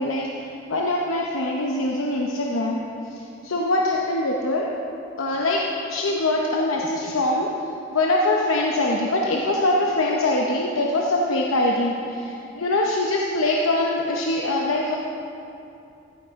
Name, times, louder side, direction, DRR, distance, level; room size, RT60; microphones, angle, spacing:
voice 1, 0.0-2.8 3.1-4.7 5.2-5.6 5.9-7.5 7.9-15.0, left 2 dB, 85° left, -1 dB, 0.8 m, -23 dB
13.5 x 9.4 x 3.6 m, 2.7 s
head